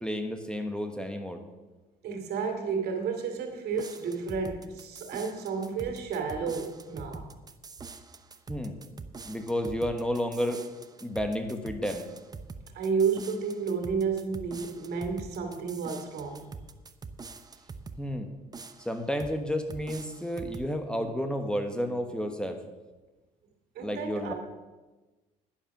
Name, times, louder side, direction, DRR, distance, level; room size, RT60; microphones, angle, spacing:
voice 1, 0.0-1.4 8.5-8.8 9.2-10.6 11.0-12.0 18.0-18.3 18.8-22.6 23.8-24.3, equal, 5° left, 6 dB, 1.2 m, -31 dB
voice 2, 2.0-7.3 12.7-16.5 23.7-24.3, right 5 dB, 70° right, 4 dB, 2.6 m, -31 dB
sound 1, 3.7-18.1 18.5-19.4 19.7-20.7, right 4 dB, 25° right, 0.8 m, -45 dB
11.0 x 10.5 x 6.0 m, 1.2 s
cardioid pair, 110°, 17 cm